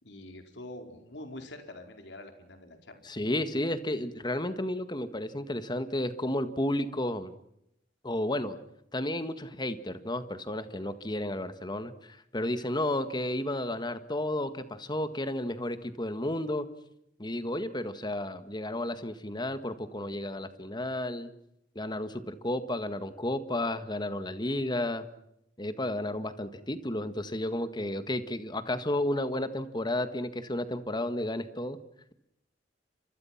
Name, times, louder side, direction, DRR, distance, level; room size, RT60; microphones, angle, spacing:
voice 1, 0.0-3.1, left 1 dB, 70° left, 5 dB, 4.5 m, -45 dB
voice 2, 3.1-7.3 8.0-8.6 8.9-16.7 17.2-21.3 21.8-25.1 25.6-31.8, left 1 dB, 25° left, 11 dB, 1.8 m, -32 dB
29.5 x 26.0 x 5.9 m, 0.79 s
head